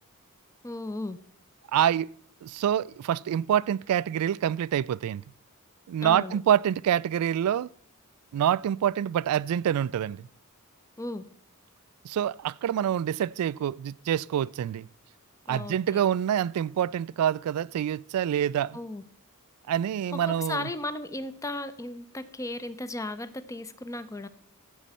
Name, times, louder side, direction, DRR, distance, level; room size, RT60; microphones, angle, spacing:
voice 1, 0.6-1.2 6.0-6.4 11.0-11.2 15.5-16.0 18.7-19.0 20.3-24.3, left 2 dB, 15° left, 0.6 m, -35 dB
voice 2, 1.7-2.1 2.4-5.2 5.9-7.7 8.3-10.3 12.0-14.9 15.5-18.8 19.7-20.7, right 10 dB, 90° right, 0.3 m, -26 dB
14.5 x 7.2 x 4.2 m
head